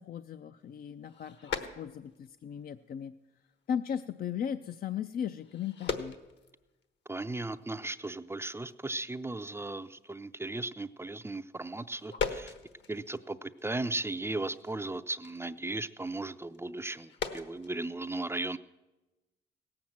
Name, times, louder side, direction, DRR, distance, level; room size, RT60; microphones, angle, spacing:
voice 1, 0.0-3.1 3.7-6.2, left 8 dB, 50° left, 11 dB, 0.4 m, -37 dB
sound 1, 0.6-2.3 2.6-3.0 3.5-3.7 4.0-4.1 4.3-4.5 5.3-6.9 7.2-7.3 7.5-7.9 8.3-8.4 8.7-9.1 9.3-9.6 9.9-10.0 11.7-13.6 13.9-17.7, left 6 dB, 65° left, 1.3 m, -40 dB
voice 2, 7.1-12.5 12.9-18.6, right 2 dB, 10° right, 12 dB, 0.5 m, -36 dB
17.0 x 7.7 x 7.3 m, 1.1 s
cardioid pair, 90°, 20 cm